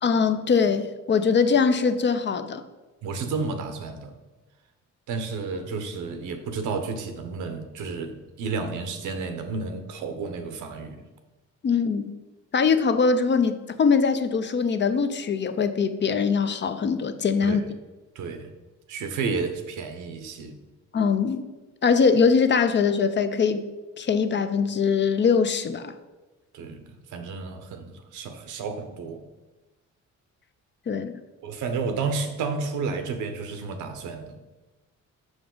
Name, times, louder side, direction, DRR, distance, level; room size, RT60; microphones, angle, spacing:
voice 1, 0.0-2.6 11.6-12.1 12.5-17.6 20.9-21.5 21.8-23.6 24.0-25.9 30.9-31.2, left 5 dB, 40° left, 0.5 m, -22 dB
voice 2, 3.0-4.2 5.1-11.1 17.4-17.6 18.1-18.5 18.9-20.6 26.5-29.2 31.4-34.4, right 4 dB, 80° right, 0.9 m, -31 dB
6.0 x 5.2 x 3.8 m
cardioid pair, 90°, 30 cm